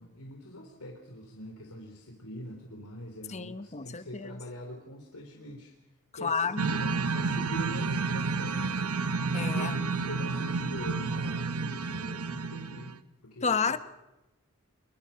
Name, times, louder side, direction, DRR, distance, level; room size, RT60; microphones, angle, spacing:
voice 1, 0.0-5.7 6.1-8.8 9.5-13.0 13.2-13.8, left 1 dB, 90° left, 3.5 m, -43 dB
voice 2, 3.3-4.4 6.2-6.6 9.3-9.8 13.4-13.8, left 5 dB, 30° left, 1.0 m, -30 dB
sound 1, 6.6-12.9, right 4 dB, 80° right, 1.1 m, -30 dB
27.5 x 22.5 x 5.8 m
head